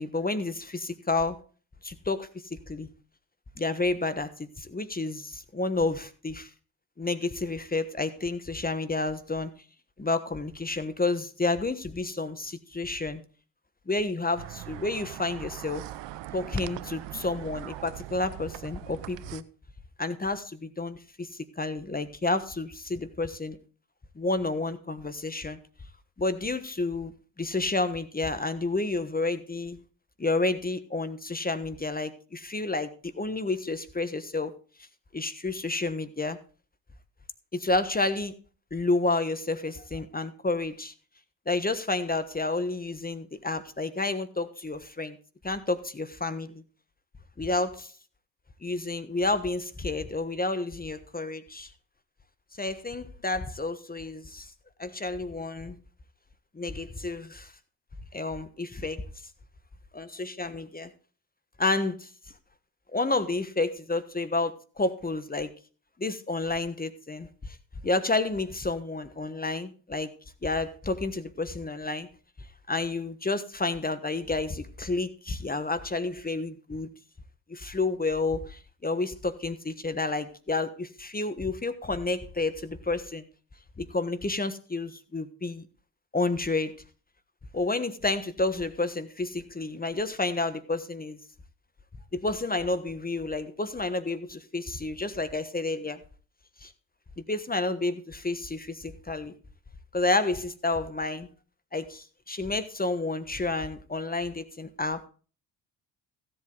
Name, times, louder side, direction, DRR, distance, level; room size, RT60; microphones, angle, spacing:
voice 1, 0.0-1.4 1.8-2.9 3.6-6.5 7.0-9.5 10.0-13.2 13.9-15.8 16.3-19.4 20.0-23.6 24.2-25.6 26.2-27.1 27.4-29.8 30.2-34.5 35.1-36.4 37.5-38.3 38.7-40.9 41.5-45.2 45.4-46.6 47.4-47.9 48.6-51.7 52.6-54.5 54.8-55.8 56.5-57.5 58.1-59.1 59.9-60.9 61.6-62.1 62.9-65.5 66.0-67.6 67.8-70.1 70.4-72.1 72.7-76.9 77.5-83.2 83.8-85.7 86.1-86.7 87.5-91.2 92.1-96.0 96.6-96.7 97.3-99.3 99.9-101.3 101.7-105.0, left 2 dB, 20° left, 11 dB, 1.2 m, -30 dB
sound 1, 14.4-19.4, right 14 dB, 60° right, 0.8 m, -41 dB
15.5 x 7.8 x 3.9 m, 0.38 s
hypercardioid pair, 55°, 48 cm